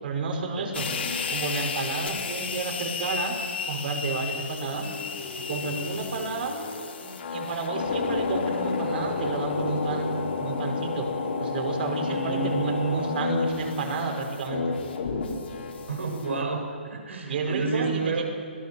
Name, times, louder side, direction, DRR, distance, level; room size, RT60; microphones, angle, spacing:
voice 1, 0.0-0.9 1.3-3.3 3.7-4.9 5.5-6.5 7.0-10.1 10.4-11.1 11.4-14.7 17.2-18.2, right 4 dB, 55° right, 2 dB, 5.2 m, -31 dB
sound 1, 0.7-16.4, left 4 dB, 65° left, 3.5 m, -31 dB
voice 2, 12.0-13.0 15.9-18.2, right 4 dB, 90° right, 3 dB, 6.1 m, -29 dB
26.0 x 18.0 x 7.0 m, 2.4 s
hypercardioid pair, 160°, 6 cm